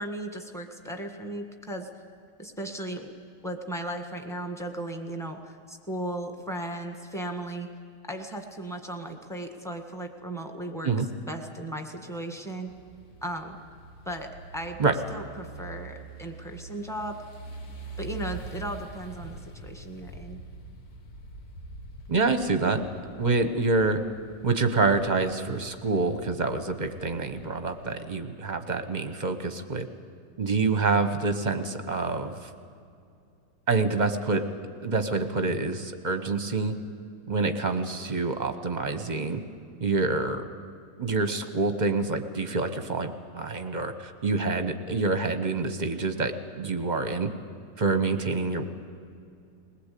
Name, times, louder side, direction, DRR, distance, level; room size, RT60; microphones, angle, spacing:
voice 1, 0.0-1.9 2.4-3.1 3.4-7.7 8.1-12.7 13.2-13.6 14.0-14.8 15.1-17.2 18.0-20.4, right 1 dB, ahead, 4 dB, 1.5 m, -36 dB
sound 1, 12.7-28.0, right 3 dB, 55° left, 2.0 m, -45 dB
voice 2, 22.1-22.8 23.2-24.0 24.4-29.9 30.4-32.5 33.7-34.4 34.8-36.7 37.3-39.4 39.8-40.4 41.0-47.3 47.8-48.6, right 3 dB, 30° right, 8 dB, 1.0 m, -27 dB
21.0 x 19.5 x 8.4 m, 2.4 s
omnidirectional pair, 1.9 m